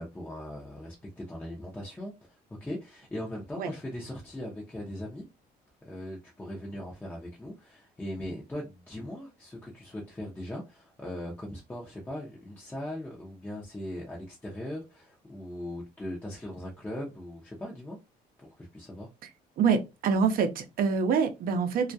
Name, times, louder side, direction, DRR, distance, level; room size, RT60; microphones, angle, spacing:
voice 1, 0.0-5.2 5.8-18.0 18.4-19.1, left 1 dB, 10° left, 0.6 m, -39 dB
voice 2, 19.6-21.9, right 6 dB, 60° right, 0.6 m, -26 dB
2.3 x 2.1 x 2.6 m
cardioid pair, 110°, 17 cm